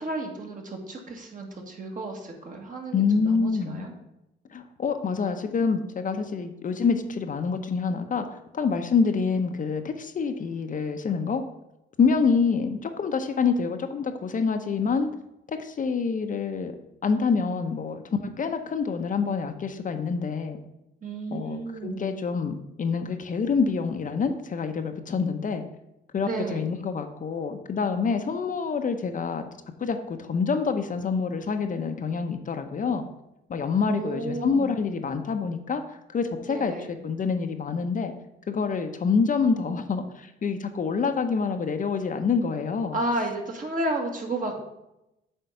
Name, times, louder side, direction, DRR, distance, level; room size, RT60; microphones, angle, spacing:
voice 1, 0.0-3.9 21.0-22.1 26.2-26.7 33.9-34.7 36.5-36.9 42.9-44.6, right 2 dB, 40° right, 1 dB, 1.7 m, -32 dB
voice 2, 2.9-3.9 4.5-11.4 12.0-15.1 15.5-16.7 17.0-20.6 21.3-25.6 26.1-29.5 29.8-33.0 33.5-38.1 38.5-43.0, left 5 dB, 40° left, 7 dB, 0.7 m, -26 dB
7.9 x 3.7 x 5.5 m, 0.89 s
cardioid pair, 90°, 20 cm